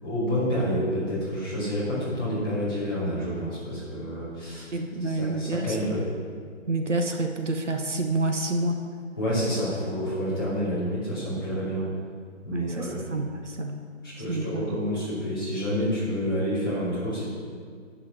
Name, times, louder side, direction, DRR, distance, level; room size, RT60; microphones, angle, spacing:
voice 1, 0.0-4.7 5.0-6.1 9.2-11.9 12.4-13.1 14.0-17.3, equal, 15° left, -12 dB, 2.7 m, -28 dB
voice 2, 4.7-5.8 6.7-8.8 12.5-13.8 14.3-14.7, right 2 dB, 65° right, 4 dB, 1.0 m, -28 dB
11.0 x 4.4 x 7.4 m, 2.1 s
figure-of-eight pair, 175°, 39 cm